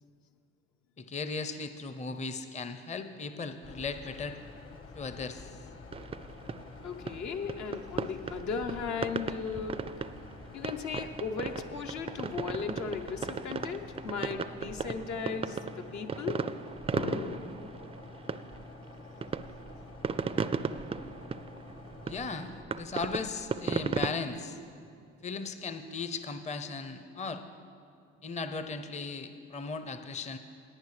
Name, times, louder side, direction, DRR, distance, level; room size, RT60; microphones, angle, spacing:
voice 1, 1.0-4.4 4.9-5.6 22.0-24.6 25.2-27.4 28.2-30.4, left 4 dB, 20° left, 9 dB, 0.6 m, -37 dB
sound 1, 3.6-22.6, left 3 dB, 45° left, 1.2 m, -49 dB
sound 2, 5.9-24.1, right 5 dB, 20° right, 0.3 m, -36 dB
voice 2, 6.8-9.9 10.5-16.5 16.9-17.8 21.6-21.7 25.0-25.1, left 5 dB, 65° left, 5 dB, 0.9 m, -37 dB
18.0 x 9.3 x 3.3 m, 2.4 s
hypercardioid pair, 55°, 31 cm